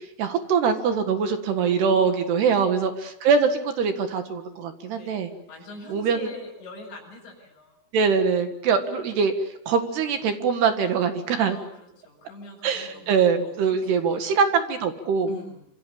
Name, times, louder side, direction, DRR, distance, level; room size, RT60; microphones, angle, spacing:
voice 1, 0.2-5.3 5.9-6.3 7.9-9.3 9.7-11.6 12.6-15.3, right 6 dB, 65° right, 7 dB, 3.6 m, -23 dB
voice 2, 1.7-2.9 4.9-7.8 11.4-13.1 13.4-14.4 15.3-15.6, left 2 dB, 40° left, -1 dB, 8.4 m, -44 dB
28.0 x 27.0 x 7.2 m, 0.75 s
omnidirectional pair, 5.5 m